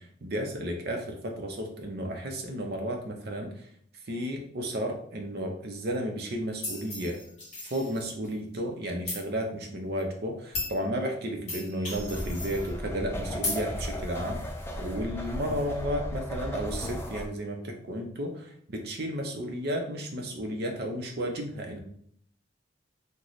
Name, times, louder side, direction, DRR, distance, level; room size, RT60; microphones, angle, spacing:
voice 1, 0.2-3.5 4.1-7.2 7.7-14.4 14.8-21.8, equal, 55° right, 2 dB, 0.6 m, -33 dB
sound 1, 6.6-8.3 9.1-9.2 10.0-10.1 10.5-10.8 11.5-12.7 13.4-13.6, left 2 dB, 35° left, 1.4 m, -35 dB
sound 2, 11.9-17.3, equal, 15° left, 0.4 m, -36 dB
3.0 x 2.2 x 4.0 m, 0.64 s
head